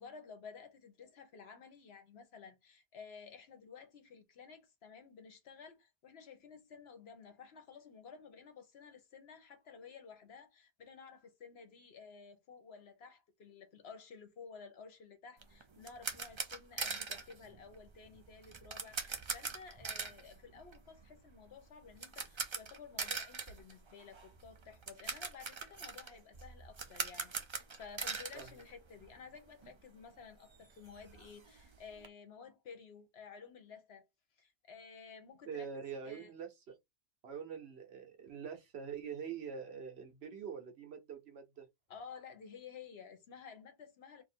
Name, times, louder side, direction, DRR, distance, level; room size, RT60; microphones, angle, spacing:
voice 1, 0.0-34.0 34.4-35.7 36.0-36.3 41.9-44.2, left 5 dB, 65° left, 1.1 m, -53 dB
sound 1, 15.4-29.4 29.6-29.8 30.2-30.3 30.5-32.1, right 4 dB, 35° right, 0.5 m, -43 dB
voice 2, 35.4-36.8 37.2-41.7, right 7 dB, 65° right, 1.1 m, -44 dB
2.7 x 2.5 x 4.3 m
omnidirectional pair, 1.2 m